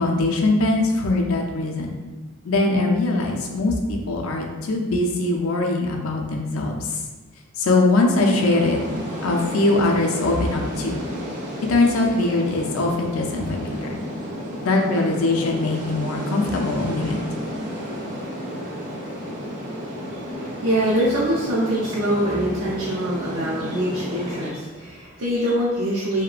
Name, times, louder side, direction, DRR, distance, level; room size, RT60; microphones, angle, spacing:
voice 1, 0.0-1.9 2.5-6.9 7.6-8.8 9.2-11.0 11.7-14.0 14.6-17.2, left 2 dB, 75° left, 1 dB, 0.4 m, -21 dB
sound 1, 8.2-24.5, equal, 40° right, 0.4 m, -32 dB
voice 2, 20.1-26.2, equal, 85° right, -9 dB, 0.5 m, -24 dB
2.9 x 2.1 x 2.4 m, 1.2 s
head